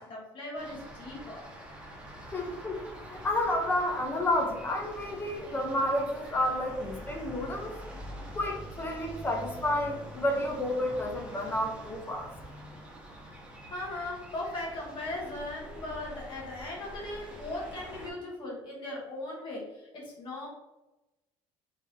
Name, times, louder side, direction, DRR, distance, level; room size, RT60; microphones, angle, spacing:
voice 1, 0.0-1.4 13.7-20.5, left 2 dB, 50° left, -4 dB, 1.2 m, -38 dB
sound 1, 0.5-18.1, right 1 dB, 10° right, 0.8 m, -45 dB
voice 2, 2.3-7.7 8.3-12.3, left 1 dB, 20° left, 1 dB, 0.5 m, -30 dB
3.2 x 2.8 x 3.5 m, 1.0 s
cardioid pair, 140°, 11 cm